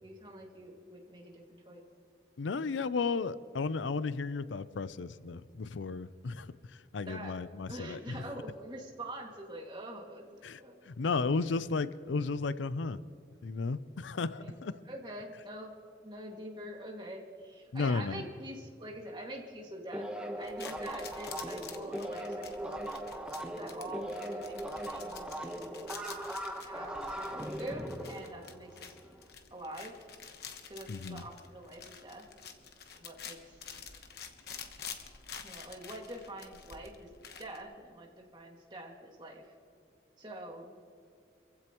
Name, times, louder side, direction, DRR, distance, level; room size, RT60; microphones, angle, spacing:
voice 1, 0.0-1.8 7.0-7.3 7.7-11.4 14.4-14.5 14.9-15.7 16.0-20.1 20.4-22.8 23.6-25.5 26.6-29.0 29.5-30.0 30.7-32.2 32.9-33.6 35.4-37.1 37.4-39.4 40.2-40.8, right 1 dB, 25° right, 0 dB, 2.1 m, -45 dB
voice 2, 2.4-6.5 6.9-8.2 10.4-10.6 10.9-13.0 13.4-14.8 17.7-18.2 30.9-31.2, left 4 dB, 90° left, 16 dB, 0.5 m, -34 dB
sound 1, 19.9-29.1, right 1 dB, 5° right, 1.1 m, -39 dB
sound 2, 20.4-37.6, left 7 dB, 60° left, 1.1 m, -49 dB
25.5 x 15.5 x 3.0 m, 2.3 s
head